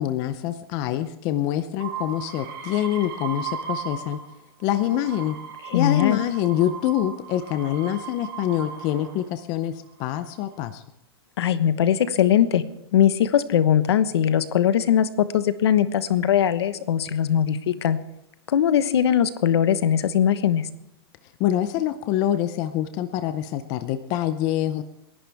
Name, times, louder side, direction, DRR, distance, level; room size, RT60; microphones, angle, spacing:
voice 1, 0.0-4.2 4.6-5.4 5.7-10.8 21.4-24.8, left 12 dB, 30° left, 10 dB, 0.6 m, -25 dB
sound 1, 1.8-4.3 4.7-9.2 10.0-10.6, right 7 dB, 55° right, 2.8 m, -36 dB
voice 2, 5.7-6.2 11.4-12.6 12.9-15.1 15.3-18.0 18.5-20.7, left 9 dB, 80° left, 12 dB, 1.2 m, -20 dB
28.5 x 11.5 x 3.5 m, 0.85 s
supercardioid pair, 165°, 13 cm